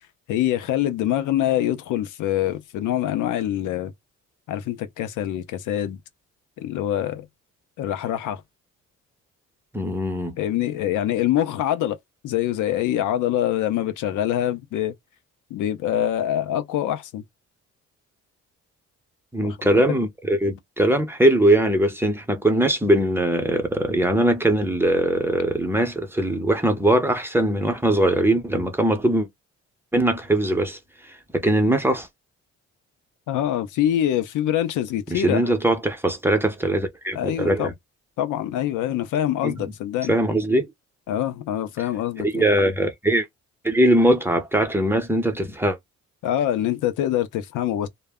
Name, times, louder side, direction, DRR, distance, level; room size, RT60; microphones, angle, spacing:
voice 1, 0.3-3.9 4.5-6.0 6.6-7.3 7.8-8.4 10.4-12.0 12.2-14.9 15.5-17.2 19.4-20.0 33.3-35.5 37.1-37.7 38.2-40.1 41.1-42.4 46.2-47.9, left 11 dB, 85° left, 0.6 m, -25 dB
voice 2, 9.7-10.4 19.3-29.3 29.9-32.1 35.1-37.7 39.4-39.6 40.1-40.7 42.2-43.3 43.6-45.8, right 1 dB, 10° right, 0.7 m, -21 dB
2.1 x 2.0 x 3.5 m
cardioid pair, 90°, 30 cm